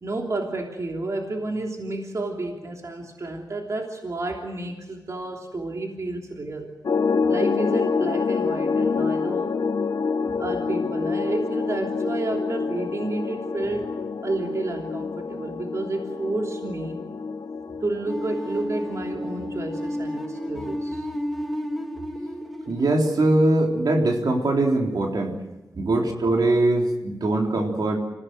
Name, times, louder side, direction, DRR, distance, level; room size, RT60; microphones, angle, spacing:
voice 1, 0.0-6.7 7.3-9.6 10.2-13.9 14.2-17.0 17.7-21.1, right 2 dB, 45° right, 1 dB, 3.1 m, -30 dB
sound 1, 6.8-20.8, left 5 dB, 65° left, 1.1 m, -27 dB
sound 2, 18.1-24.9, equal, ahead, 2.1 m, -33 dB
voice 2, 22.7-25.4 25.8-28.0, right 2 dB, 70° right, 1 dB, 3.7 m, -22 dB
26.5 x 16.5 x 9.3 m, 1.1 s
wide cardioid pair, 90°, 7 cm